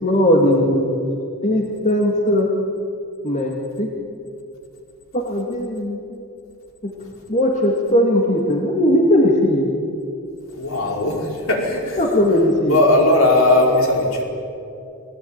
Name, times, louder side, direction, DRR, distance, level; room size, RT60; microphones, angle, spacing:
voice 1, 0.0-1.0 1.4-2.5 3.2-3.9 5.1-6.2 6.8-6.9 7.3-9.7 12.0-12.8, left 1 dB, 35° left, 0 dB, 2.4 m, -18 dB
voice 2, 10.5-12.0 12.7-14.2, left 1 dB, 65° left, 0 dB, 5.0 m, -18 dB
29.0 x 19.5 x 9.1 m, 2.7 s
head